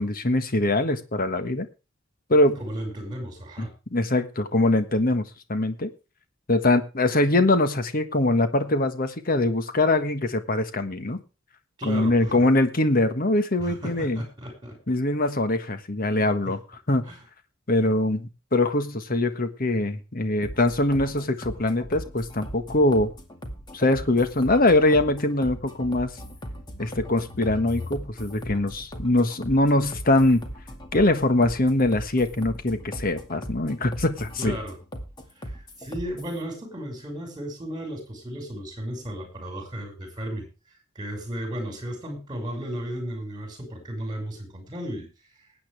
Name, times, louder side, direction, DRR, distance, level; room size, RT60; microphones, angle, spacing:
voice 1, 0.0-1.7 2.3-2.6 3.6-5.9 6.5-11.2 11.8-14.2 14.9-16.6 16.9-17.1 17.7-23.1 23.7-26.1 26.8-30.4 30.9-34.6, left 2 dB, 45° left, 10 dB, 1.5 m, -23 dB
voice 2, 2.6-3.7 11.8-12.4 13.6-14.8 16.5-16.6 17.1-17.2 34.4-34.8 35.4-40.4 41.0-45.1, equal, 20° right, 5 dB, 5.7 m, -34 dB
sound 1, 20.4-36.4, equal, 20° left, 2.1 m, -39 dB
20.0 x 8.8 x 3.4 m, 0.31 s
head